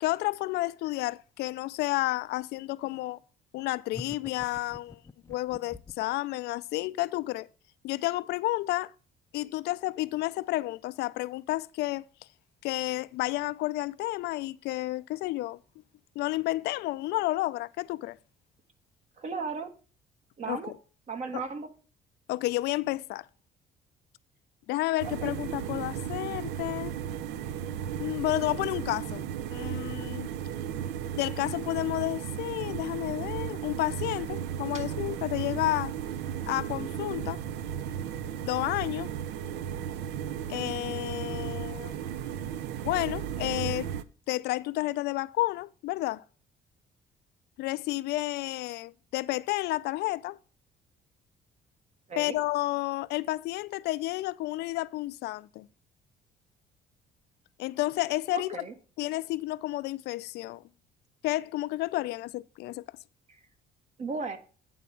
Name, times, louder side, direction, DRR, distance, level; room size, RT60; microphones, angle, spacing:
voice 1, 0.0-3.2 3.5-5.0 5.3-7.5 7.8-8.9 9.3-12.0 12.6-15.6 16.2-18.2 20.5-20.6 22.3-23.2 24.7-26.9 28.0-29.2 29.5-30.3 31.1-35.9 36.5-37.4 38.4-39.1 40.5-42.0 42.8-43.9 44.3-46.2 47.6-50.4 52.2-55.7 57.6-58.6 59.0-60.6 61.2-62.8, left 17 dB, 80° left, 0.4 m, -31 dB
sound 1, 3.9-6.1, left 3 dB, 15° left, 0.5 m, -45 dB
voice 2, 19.2-19.7 20.4-20.7 21.1-21.7 25.2-25.3 34.7-34.8 52.1-52.4 58.3-58.7 64.0-64.4, right 4 dB, 45° right, 1.3 m, -35 dB
sound 2, 25.0-44.0, right 9 dB, 90° right, 0.6 m, -35 dB
9.4 x 3.4 x 6.9 m
cardioid pair, 110°, 17 cm